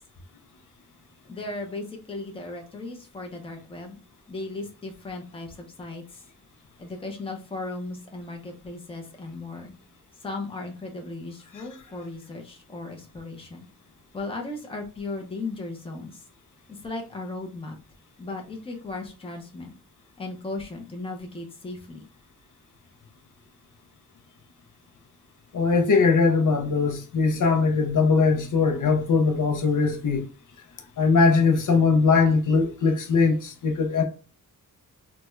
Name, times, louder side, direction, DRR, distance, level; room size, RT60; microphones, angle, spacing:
voice 1, 1.3-4.0 4.3-6.2 6.8-9.7 10.2-13.7 14.1-16.2 16.7-17.8 18.2-19.7 20.2-22.0, left 2 dB, 15° left, 0.5 m, -36 dB
voice 2, 25.5-30.3 31.0-34.0, left 4 dB, 60° left, 0.6 m, -21 dB
3.4 x 2.2 x 3.0 m
wide cardioid pair, 160°, 35 cm